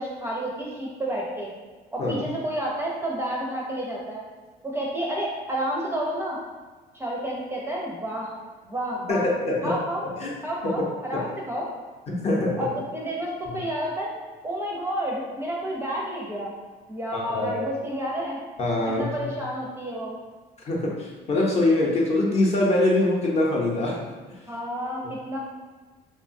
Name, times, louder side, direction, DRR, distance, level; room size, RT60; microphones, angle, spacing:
voice 1, 0.0-1.5 1.9-4.2 4.6-6.4 6.9-8.3 8.7-9.3 9.6-10.0 10.4-11.6 12.6-14.1 14.4-16.5 16.9-18.4 18.9-20.1 24.5-25.4, right 1 dB, 15° right, -4 dB, 0.5 m, -30 dB
voice 2, 9.1-9.8 10.2-10.3 10.6-10.8 11.1-11.2 12.1-12.7 17.1-17.6 18.6-19.3 20.7-24.1, left 2 dB, 40° left, -3 dB, 0.6 m, -23 dB
2.8 x 2.2 x 2.5 m, 1.4 s
cardioid pair, 110°, 17 cm